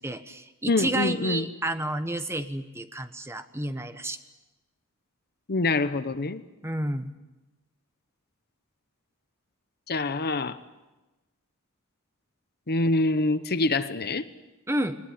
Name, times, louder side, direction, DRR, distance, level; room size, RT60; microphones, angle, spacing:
voice 1, 0.0-4.2 6.6-7.1 14.7-15.0, right 1 dB, 10° right, 9 dB, 1.2 m, -30 dB
voice 2, 0.7-1.5 5.5-6.4 9.9-10.6 12.7-14.3, left 2 dB, 50° left, 12 dB, 1.0 m, -25 dB
21.0 x 20.0 x 9.5 m, 1.1 s
head